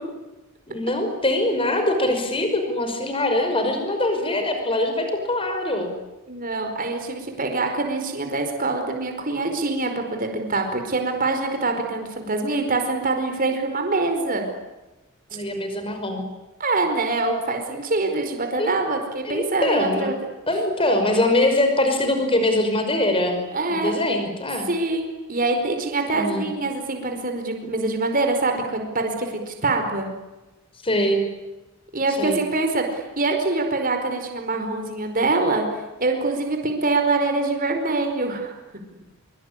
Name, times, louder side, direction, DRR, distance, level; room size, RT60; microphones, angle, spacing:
voice 1, 0.7-5.9 15.3-16.3 18.6-18.7 19.2-20.1 20.5-23.4 23.7-24.7 26.1-26.5 30.8-31.2 32.2-32.4, left 1 dB, 25° left, 6 dB, 5.6 m, -23 dB
voice 2, 6.3-14.4 16.6-20.1 23.5-24.0 24.7-30.1 31.9-35.6 36.0-38.5, right 3 dB, 40° right, 4 dB, 4.8 m, -24 dB
25.0 x 24.0 x 9.9 m, 1.1 s
head